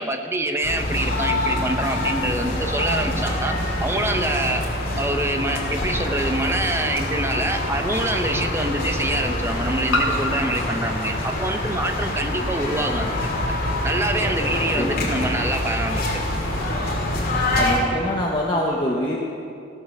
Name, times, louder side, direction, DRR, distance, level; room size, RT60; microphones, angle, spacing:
voice 1, 0.0-4.6 5.0-13.1 13.8-16.2, right 1 dB, 15° right, 5 dB, 0.8 m, -25 dB
sound 1, 0.6-17.8, left 1 dB, 50° left, 2.6 m, -25 dB
sound 2, 6.0-6.1 7.7-7.8 9.9-12.4, left 1 dB, 80° left, 1.5 m, -29 dB
voice 2, 12.4-12.9 14.8-15.2 17.6-19.2, left 1 dB, 25° left, -3 dB, 1.0 m, -26 dB
15.0 x 7.7 x 6.6 m, 2.5 s
head